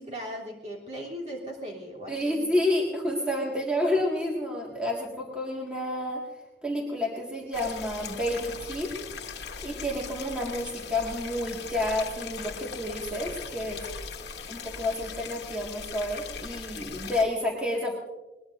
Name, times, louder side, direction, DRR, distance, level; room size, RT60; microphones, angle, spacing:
voice 1, 0.0-2.4, equal, 40° right, -3 dB, 3.2 m, -38 dB
voice 2, 2.1-6.2 6.6-8.9 9.6-13.8 14.5-18.0, left 1 dB, 5° right, -3 dB, 1.8 m, -29 dB
sound 1, 7.5-17.2, left 5 dB, 70° left, 1.3 m, -39 dB
21.0 x 20.5 x 2.6 m, 1.1 s
head